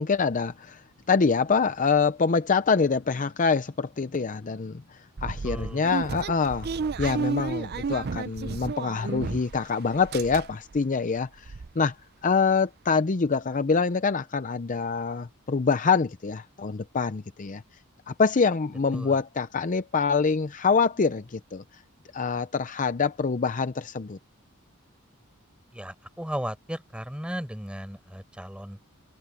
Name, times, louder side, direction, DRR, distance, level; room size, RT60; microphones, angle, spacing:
voice 1, 0.0-6.7 7.0-12.0 12.2-17.6 18.1-21.8 22.1-24.2, left 5 dB, 40° left, 0.6 m, -25 dB
sound 1, 5.2-9.6 9.9-10.8 11.2-11.3 11.4-11.7, right 4 dB, 50° right, 0.5 m, -32 dB
voice 2, 5.4-5.9 18.9-19.2 25.7-28.8, equal, 5° right, 4.8 m, -35 dB
head